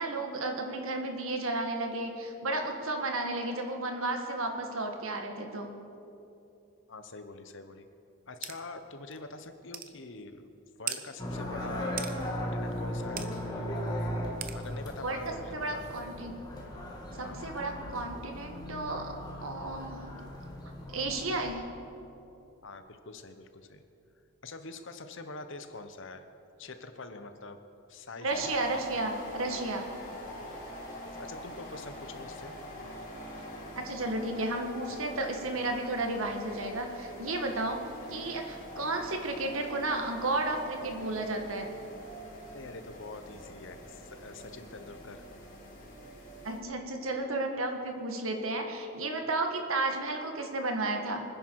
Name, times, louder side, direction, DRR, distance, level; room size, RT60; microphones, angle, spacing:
voice 1, 0.0-5.7 15.0-15.2 15.5-16.3 17.2-19.1 19.4-20.1 20.9-21.6 28.2-29.9 33.8-37.8 38.1-41.7 46.4-51.2, right 2 dB, 65° right, 3 dB, 1.7 m, -33 dB
voice 2, 6.9-7.9 8.3-10.4 10.8-12.0 12.3-13.3 14.5-16.0 17.2-17.4 22.6-23.8 24.4-26.3 26.6-27.6 27.9-28.5 31.0-32.5 42.5-45.2, left 3 dB, 55° left, 8 dB, 1.0 m, -45 dB
sound 1, 8.4-8.6 9.1-9.2 9.7-9.9 10.9-11.0 12.0-12.1 13.2-13.3 14.4-14.6, right 9 dB, 40° right, 0.8 m, -36 dB
sound 2, 11.2-21.5, left 1 dB, 20° left, 1.9 m, -37 dB
sound 3, 28.3-46.6, equal, 35° left, 3.3 m, -44 dB
24.5 x 10.0 x 4.7 m, 2.8 s
head